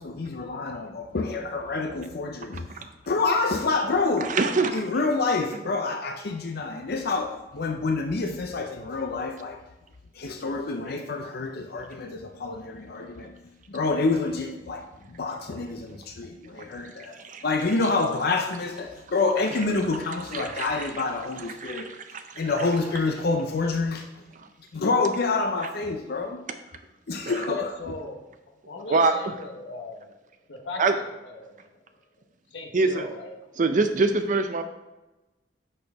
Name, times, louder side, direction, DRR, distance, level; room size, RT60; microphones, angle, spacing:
voice 1, 0.0-2.7 3.1-4.3 4.7-9.6 10.1-17.2 17.4-21.9 22.4-24.2 24.7-26.4 27.1-27.7, left 3 dB, 55° left, 4 dB, 0.6 m, -27 dB
voice 2, 2.5-2.9 4.2-4.8 17.2-17.4 20.3-20.7 21.6-22.4 27.2-27.4 28.9-29.3 30.8-30.9 32.7-33.1 33.6-34.6, right 3 dB, 45° right, 8 dB, 0.6 m, -24 dB
voice 3, 27.5-30.2 30.5-32.0 32.5-33.3, left 2 dB, 90° left, 2 dB, 0.9 m, -39 dB
10.0 x 4.3 x 3.5 m, 1.0 s
head